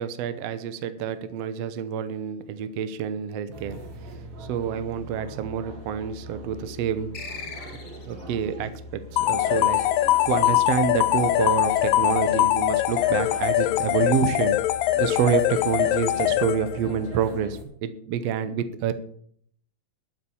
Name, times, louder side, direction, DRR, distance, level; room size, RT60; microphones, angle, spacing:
voice 1, 0.0-3.8 4.1-7.2 8.1-9.8 10.2-14.6 15.0-18.9, right 8 dB, 75° right, 11 dB, 1.5 m, -28 dB
sound 1, 3.5-17.6, right 1 dB, 50° right, 2.7 m, -41 dB
sound 2, 7.1-8.3, left 4 dB, 35° left, 2.4 m, -39 dB
sound 3, 9.2-16.9, left 15 dB, 80° left, 2.3 m, -22 dB
12.0 x 7.3 x 7.1 m, 0.64 s
omnidirectional pair, 3.9 m